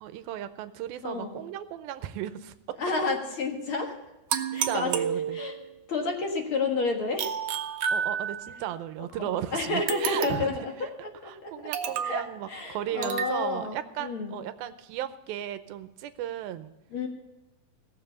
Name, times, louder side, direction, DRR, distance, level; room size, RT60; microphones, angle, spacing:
voice 1, 0.0-2.8 4.5-5.4 7.9-10.5 10.8-10.9 11.2-16.7, right 11 dB, 90° right, 11 dB, 2.6 m, -35 dB
voice 2, 1.0-1.4 2.8-4.0 4.5-4.9 5.3-5.5 5.9-7.3 9.2-10.9 11.2-14.4 16.9-17.1, left 3 dB, 50° left, 3 dB, 1.9 m, -30 dB
sound 1, 4.3-5.7 7.2-8.6 9.9-10.6 11.7-12.3 13.0-13.4, right 8 dB, 75° right, 2.4 m, -30 dB
17.5 x 7.3 x 6.9 m, 0.98 s
omnidirectional pair, 4.2 m